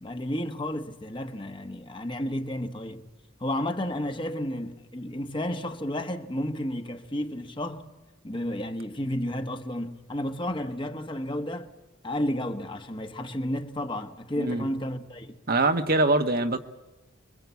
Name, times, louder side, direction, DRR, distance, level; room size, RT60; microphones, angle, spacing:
voice 1, 0.0-3.1 3.4-7.9 8.2-11.7 12.0-15.4, left 1 dB, 25° left, 1.4 m, -32 dB
voice 2, 15.5-16.6, right 2 dB, 45° right, 1.3 m, -23 dB
27.5 x 22.5 x 8.3 m
head